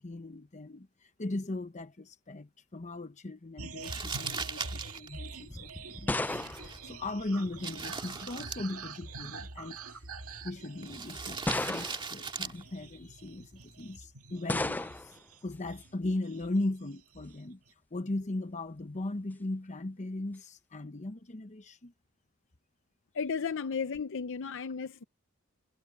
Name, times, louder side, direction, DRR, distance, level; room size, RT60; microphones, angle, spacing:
voice 1, 0.0-6.1 6.5-9.8 10.4-17.6 17.9-21.9, left 2 dB, 35° left, 0.9 m, -38 dB
sound 1, 3.6-16.6 16.9-17.7, right 4 dB, 80° right, 2.0 m, -46 dB
Crumpling crinkling, 3.8-14.0, right 5 dB, 25° right, 2.1 m, -42 dB
sound 2, 5.5-7.8 8.9-9.3 10.1-10.2 11.5-12.3 14.5-15.2, left 2 dB, 10° left, 0.3 m, -34 dB
voice 2, 23.1-25.0, left 5 dB, 60° left, 0.6 m, -34 dB
head